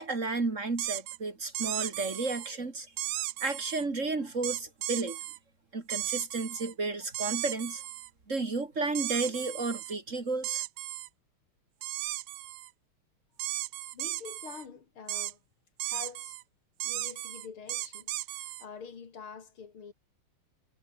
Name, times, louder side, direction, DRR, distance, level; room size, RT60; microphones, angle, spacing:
voice 1, 0.0-2.9 3.4-5.2 5.7-7.8 8.3-10.6, right 3 dB, 35° right, 2.8 m, -32 dB
sound 1, 0.8-1.2 1.5-2.5 3.0-3.8 4.4-5.4 5.9-6.7 7.1-8.1 8.9-9.9 10.4-11.1 11.8-12.7 13.4-14.6 15.1-15.3 15.8-16.4 16.8-18.6, right 16 dB, 85° right, 1.5 m, -35 dB
voice 2, 13.9-15.4 15.8-16.4 16.8-19.9, left 6 dB, 85° left, 3.4 m, -46 dB
omnidirectional pair, 2.3 m